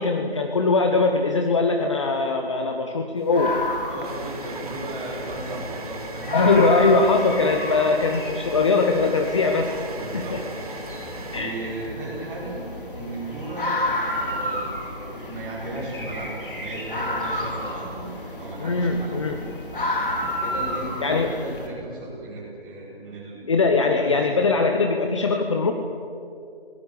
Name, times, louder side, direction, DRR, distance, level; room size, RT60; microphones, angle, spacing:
voice 1, 0.0-3.6 6.3-9.7 10.1-10.4 11.3-11.6 18.6-19.4 21.0-21.3 23.5-25.7, left 3 dB, 30° left, 4 dB, 1.2 m, -21 dB
sound 1, 3.2-11.9, right 3 dB, 35° right, 2.3 m, -39 dB
sound 2, 3.3-21.7, left 1 dB, 60° left, 4.6 m, -31 dB
voice 2, 3.9-6.6 10.0-10.5 11.3-12.6 12.9-13.8 14.2-14.8 15.1-18.1 18.4-19.2 20.4-24.6, right 2 dB, 10° right, -6 dB, 5.5 m, -35 dB
30.0 x 20.0 x 8.2 m, 2.7 s
figure-of-eight pair, 155°, 30 cm